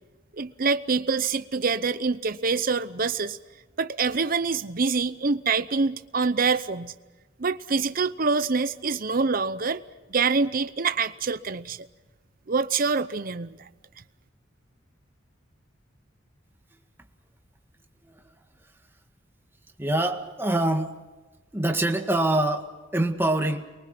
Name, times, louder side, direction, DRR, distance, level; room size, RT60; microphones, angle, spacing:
voice 1, 0.4-3.4 3.8-6.9 7.4-9.8 10.1-11.9 12.5-13.6, right 4 dB, 50° right, 12 dB, 0.8 m, -25 dB
voice 2, 19.8-21.0 21.5-23.6, right 1 dB, 10° right, 4 dB, 1.8 m, -25 dB
29.5 x 23.5 x 6.0 m, 1.2 s
head